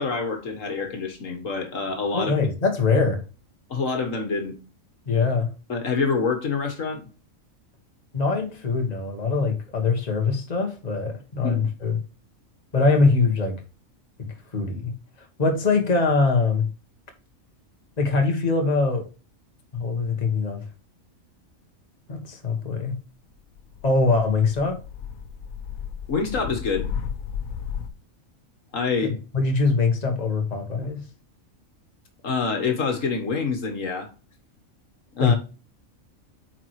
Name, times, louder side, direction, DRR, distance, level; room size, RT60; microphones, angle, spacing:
voice 1, 0.0-2.3 3.7-4.6 5.7-7.0 11.4-11.5 26.1-26.9 28.7-29.2 32.2-34.1 35.2-35.4, left 4 dB, 70° left, 1.8 m, -26 dB
voice 2, 2.1-3.2 5.1-5.5 8.1-12.0 12.7-13.6 14.2-14.9 15.4-16.7 18.0-19.0 19.7-20.6 22.1-23.0 23.8-24.8 29.0-31.0 35.2-35.3, left 4 dB, 30° left, 1.5 m, -23 dB
sound 1, 23.6-27.9, left 7 dB, 90° left, 1.2 m, -34 dB
8.7 x 4.7 x 3.1 m
omnidirectional pair, 1.4 m